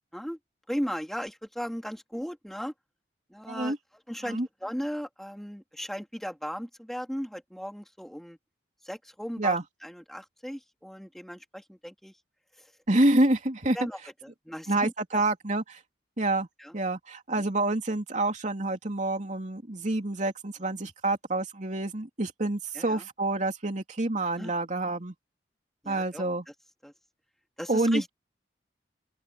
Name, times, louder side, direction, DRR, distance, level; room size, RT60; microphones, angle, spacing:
voice 1, 0.7-2.7 3.3-3.8 4.1-8.4 8.8-9.6 9.8-12.1 12.6-12.7 13.7-15.2 16.6-16.7 22.7-23.0 24.2-24.5 25.8-26.2 26.8-26.9 27.6-28.1, equal, ahead, 3.3 m, -37 dB
voice 2, 12.9-13.8 14.7-15.8 16.2-16.5 16.7-25.1 25.9-26.4 27.7-28.1, right 2 dB, 45° right, 3.0 m, -27 dB
open air
head